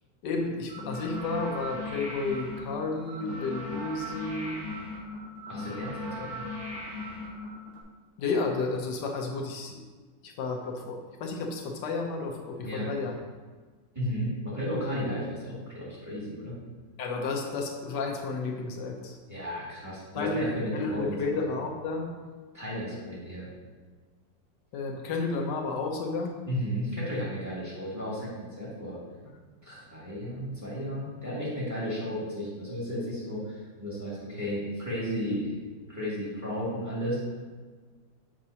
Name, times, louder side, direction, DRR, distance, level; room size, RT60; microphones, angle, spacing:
voice 1, 0.2-4.6 6.2-6.3 8.2-9.8 10.2-13.1 14.8-15.1 17.0-19.2 20.1-22.1 24.7-26.3, left 3 dB, 70° left, 2 dB, 1.4 m, -32 dB
sound 1, 0.7-7.8, left 1 dB, 70° right, 2.5 m, -38 dB
voice 2, 5.5-6.5 12.6-12.9 13.9-16.6 19.3-21.4 22.5-23.5 26.5-29.0 29.6-35.5 35.9-37.3, equal, 10° right, -8 dB, 2.0 m, -34 dB
7.5 x 5.9 x 2.8 m, 1.4 s
omnidirectional pair, 2.0 m